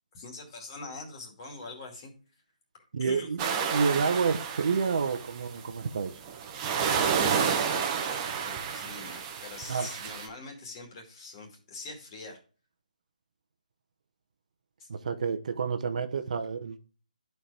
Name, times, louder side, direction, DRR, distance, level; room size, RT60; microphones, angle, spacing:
voice 1, 0.1-2.1 3.0-3.3 6.9-12.4 14.8-14.9 15.7-15.8, left 3 dB, 30° left, 2.4 m, -43 dB
voice 2, 2.9-3.4 3.7-6.1 9.7-9.9 14.9-16.8, right 5 dB, 55° right, 0.9 m, -29 dB
sound 1, 3.4-5.6 6.2-10.3, right 7 dB, 20° right, 1.0 m, -30 dB
11.5 x 4.6 x 3.4 m
hypercardioid pair, 160°, 5 cm